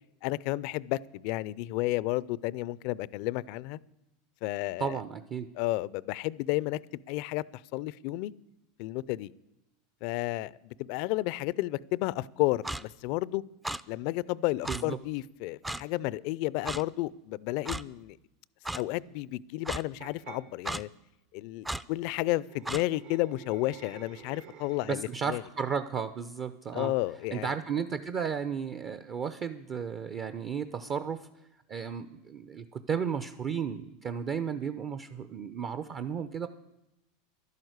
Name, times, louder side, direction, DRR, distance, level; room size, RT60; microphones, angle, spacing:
voice 1, 0.2-3.8 4.4-5.0 5.6-6.8 7.1-8.3 8.8-9.3 10.0-13.4 13.9-18.2 18.7-20.9 21.3-25.4 26.7-27.5, left 18 dB, 60° left, 0.4 m, -32 dB
voice 2, 4.8-5.5 14.7-15.0 24.9-26.9 27.3-31.3 31.7-36.5, right 7 dB, 40° right, 0.7 m, -34 dB
Clock, 12.6-12.8 13.6-13.8 14.6-14.8 15.6-15.8 16.7-16.8 17.7-17.8 18.6-18.8 19.6-19.8 20.6-20.8 21.6-21.8 22.7-22.8, right 1 dB, 10° right, 0.5 m, -34 dB
sound 1, 20.0-20.4 22.1-25.2, right 8 dB, 70° right, 2.5 m, -50 dB
11.5 x 11.0 x 8.0 m
supercardioid pair, 110°, 0 cm